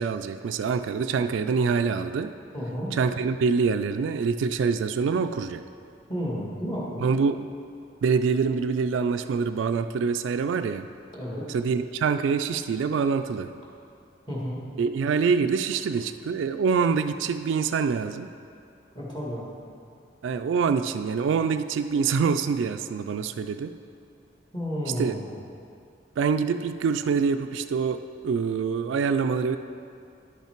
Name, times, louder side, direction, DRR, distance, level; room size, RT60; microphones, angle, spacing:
voice 1, 0.0-2.4 2.9-5.6 7.0-7.5 8.0-10.9 11.5-13.5 14.8-18.3 20.2-23.8 25.0-25.1 26.2-29.6, right 5 dB, 85° right, 9 dB, 0.3 m, -25 dB
voice 2, 2.5-2.9 6.1-7.0 11.1-11.5 14.3-14.6 18.9-19.5 24.5-25.3, equal, 25° left, -5 dB, 1.7 m, -31 dB
10.5 x 5.7 x 4.5 m, 2.4 s
head